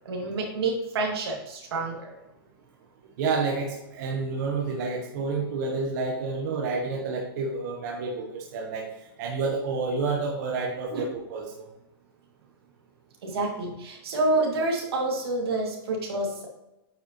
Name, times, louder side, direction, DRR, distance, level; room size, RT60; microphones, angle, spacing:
voice 1, 0.0-2.1 10.9-11.0 13.2-16.5, right 2 dB, 80° right, 0 dB, 2.5 m, -28 dB
voice 2, 3.2-8.9 9.2-11.6, right 4 dB, 45° right, -1 dB, 1.2 m, -29 dB
8.9 x 5.3 x 3.1 m, 0.92 s
supercardioid pair, 160°, 13 cm